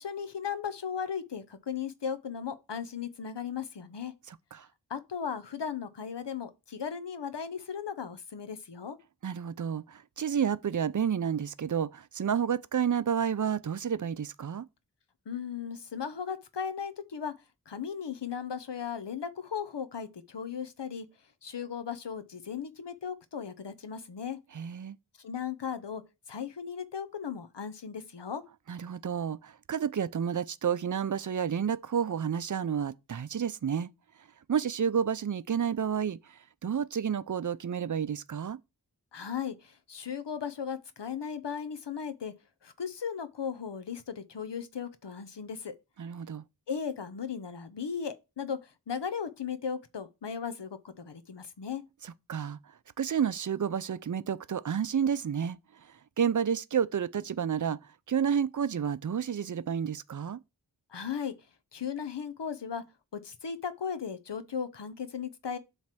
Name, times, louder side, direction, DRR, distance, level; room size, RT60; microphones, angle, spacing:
voice 1, 0.0-4.1 4.9-9.0 15.3-17.3 17.7-21.1 21.4-24.4 25.2-26.0 26.3-28.4 39.1-42.3 42.6-45.7 46.7-51.8 60.9-61.3 61.7-62.8 63.1-65.6, left 7 dB, 90° left, 0.8 m, -36 dB
voice 2, 4.3-4.7 9.2-14.7 24.5-25.0 28.7-33.9 34.5-38.6 46.0-46.4 52.0-52.6 53.0-55.6 56.2-57.8 58.1-60.4, right 7 dB, 50° right, 0.5 m, -30 dB
7.3 x 3.3 x 5.9 m
wide cardioid pair, 50°, 41 cm